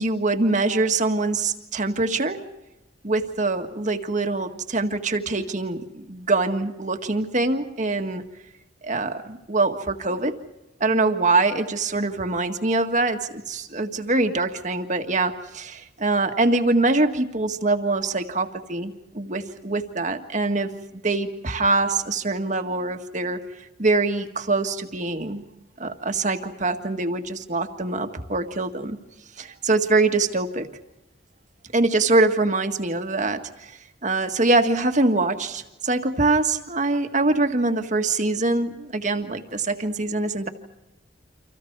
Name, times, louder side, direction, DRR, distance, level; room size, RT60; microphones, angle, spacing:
voice 1, 0.0-2.4 3.0-8.2 8.8-10.3 10.8-20.7 21.0-23.4 23.8-25.4 25.8-29.0 29.4-30.7 31.7-33.7 34.0-40.5, right 2 dB, 40° right, 6 dB, 1.7 m, -24 dB
29.5 x 26.0 x 4.7 m, 0.93 s
head